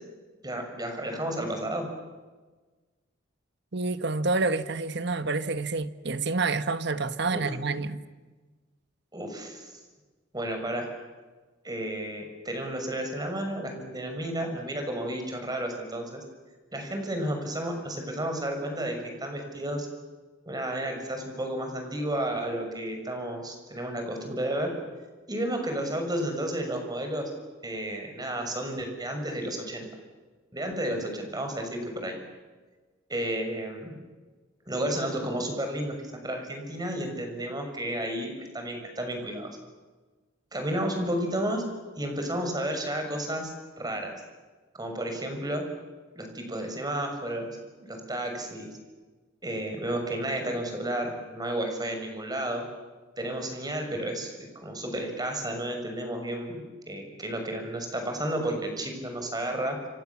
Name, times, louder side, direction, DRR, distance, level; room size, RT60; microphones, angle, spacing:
voice 1, 0.4-1.8 7.3-7.5 9.1-9.8 10.3-10.9 11.6-16.2 16.7-19.9 20.5-24.7 25.3-27.3 27.6-29.9 30.5-32.2 33.1-33.9 34.7-39.5 40.5-41.7 42.0-44.1 44.7-45.7 46.1-47.5 47.8-48.7 49.4-52.7 53.2-59.8, right 1 dB, 20° right, 6.5 m, -32 dB
voice 2, 3.7-8.0, right 3 dB, 60° right, 1.4 m, -28 dB
29.5 x 27.5 x 7.3 m
head